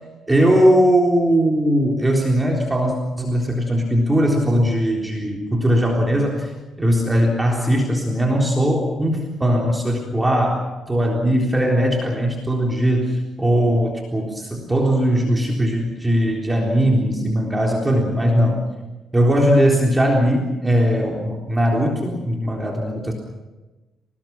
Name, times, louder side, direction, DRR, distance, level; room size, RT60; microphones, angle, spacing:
voice 1, 0.3-6.5 6.8-18.7 19.1-23.1, equal, 15° right, 0 dB, 3.8 m, -19 dB
28.0 x 19.5 x 6.0 m, 1.1 s
cardioid pair, 90°, 0 cm